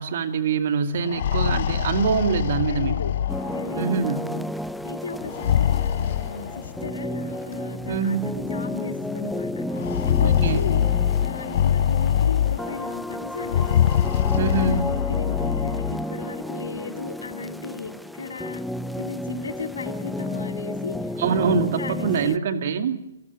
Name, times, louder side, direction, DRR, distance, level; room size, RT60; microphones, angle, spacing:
voice 1, 0.0-3.0 3.8-4.2 7.9-8.2 10.2-10.7 14.4-14.9 21.2-23.0, right 5 dB, 50° right, 8 dB, 2.2 m, -24 dB
sound 1, 1.0-3.9 5.2-6.9 7.9-8.0 8.4-8.5 9.8-12.9 13.4-16.0, left 10 dB, 50° left, 0.8 m, -23 dB
voice 2, 2.6-3.2 3.5-4.5 4.8-9.8 10.1-10.8 11.2-13.8 14.5-18.6 18.9-22.4, left 5 dB, 70° left, 7 dB, 2.4 m, -36 dB
sound 2, 3.3-22.4, left 1 dB, ahead, 0.7 m, -32 dB
28.0 x 15.0 x 7.0 m, 0.96 s
figure-of-eight pair, 130°, 0 cm